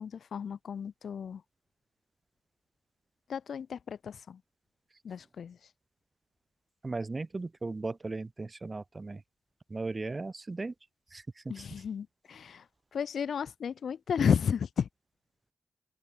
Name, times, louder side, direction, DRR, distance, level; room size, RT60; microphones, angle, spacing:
voice 1, 0.0-1.4 3.3-4.4 5.0-5.7 11.5-14.9, left 7 dB, 75° left, 0.8 m, -33 dB
voice 2, 6.8-9.2 9.7-10.7 11.1-11.5, right 3 dB, 35° right, 2.1 m, -37 dB
open air
cardioid pair, 65°, 0 cm